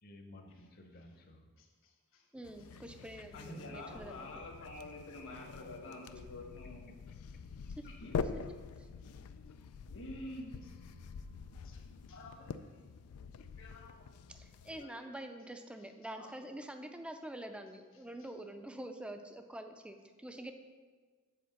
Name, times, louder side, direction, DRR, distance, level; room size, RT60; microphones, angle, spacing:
voice 1, 0.0-1.5 7.6-7.9, left 1 dB, 45° left, 5 dB, 0.9 m, -56 dB
voice 2, 1.6-2.2 3.3-6.9 8.0-8.2 9.9-10.7 11.1-12.8 13.6-14.1 14.6-15.0 16.0-16.5 18.2-18.3, left 1 dB, 65° left, 2 dB, 1.3 m, -49 dB
voice 3, 2.3-4.3 8.8-8.9 14.3-20.5, right 1 dB, 5° right, 6 dB, 0.5 m, -46 dB
sound 1, 2.4-14.9, left 5 dB, 85° left, 0.4 m, -45 dB
sound 2, 10.4-13.3, left 2 dB, 75° right, 0.7 m, -59 dB
7.8 x 4.4 x 6.4 m, 1.5 s
head